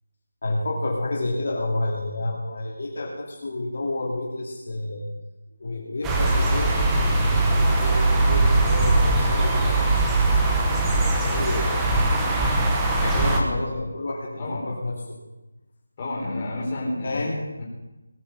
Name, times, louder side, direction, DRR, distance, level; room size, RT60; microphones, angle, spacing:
voice 1, 0.4-5.1 5.6-9.8 11.1-11.9 13.0-15.2 17.0-17.4, left 2 dB, 45° left, -2 dB, 2.6 m, -30 dB
sound 1, 6.0-13.4, right 2 dB, 5° right, 0.9 m, -21 dB
voice 2, 13.0-13.8 14.4-14.7 16.0-17.2 17.6-17.7, left 2 dB, 15° left, -5 dB, 3.9 m, -30 dB
20.0 x 7.9 x 7.8 m, 1.0 s
figure-of-eight pair, 180°, 0 cm